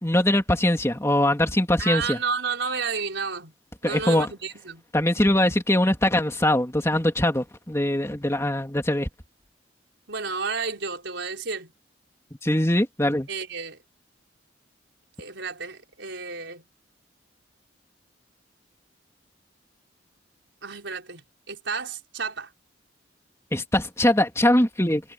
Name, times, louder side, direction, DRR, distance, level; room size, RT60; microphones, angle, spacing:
voice 1, 0.0-2.2 3.8-4.3 4.9-9.1 12.4-13.3 23.5-25.0, left 1 dB, 15° left, 2.8 m, -22 dB
voice 2, 1.8-3.5 3.8-4.8 10.1-11.7 13.3-13.8 15.2-16.6 20.6-22.5, right 5 dB, 75° right, 4.7 m, -31 dB
head